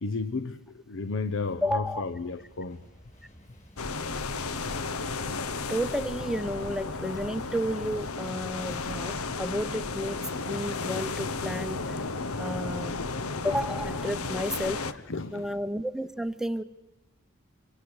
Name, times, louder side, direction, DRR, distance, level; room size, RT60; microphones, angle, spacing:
voice 1, 0.0-2.8 15.1-15.6, left 3 dB, 60° left, 0.8 m, -33 dB
sound 1, 1.3-15.5, equal, 35° left, 5.6 m, -57 dB
voice 2, 1.6-2.0 5.7-10.2 10.5-12.0 12.4-13.1 13.4-14.8 15.3-16.6, equal, ahead, 0.8 m, -32 dB
sound 2, 3.8-14.9, left 3 dB, 75° left, 1.1 m, -33 dB
27.0 x 24.0 x 8.0 m
head